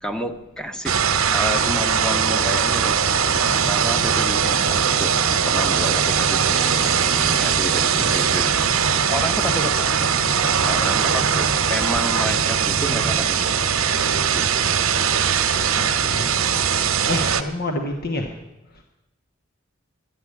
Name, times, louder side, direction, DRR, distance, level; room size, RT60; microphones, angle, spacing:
voice 1, 0.0-1.0 1.3-3.0 3.6-8.7 9.1-10.1 10.7-13.7 14.3-14.7, equal, 5° left, 7 dB, 1.0 m, -30 dB
sound 1, 0.9-17.4, right 7 dB, 80° right, 1.1 m, -20 dB
sound 2, 3.2-13.2, right 2 dB, 60° right, 0.7 m, -34 dB
voice 2, 15.7-16.3 17.1-18.3 18.7-18.8, left 2 dB, 50° left, 4 dB, 1.1 m, -28 dB
11.5 x 11.0 x 8.3 m, 0.96 s
head